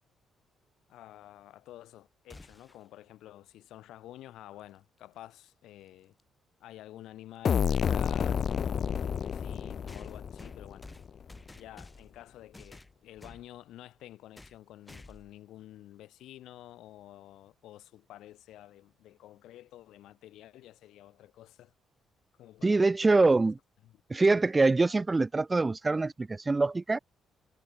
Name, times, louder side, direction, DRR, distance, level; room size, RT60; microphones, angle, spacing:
voice 1, 0.9-6.1 6.6-10.8 11.5-21.7 22.4-22.9 23.8-24.0, left 14 dB, 85° left, 4.5 m, -50 dB
sound 1, 2.3-2.9 5.0-5.1 6.2-6.3 9.9-12.2 12.5-13.5 14.3-14.6 14.9-15.3, left 2 dB, 15° left, 6.1 m, -51 dB
sound 2, 7.4-11.1, left 7 dB, 50° left, 0.7 m, -30 dB
voice 2, 22.6-23.6 24.1-27.0, right 3 dB, 25° right, 0.4 m, -24 dB
cardioid pair, 90°, 0 cm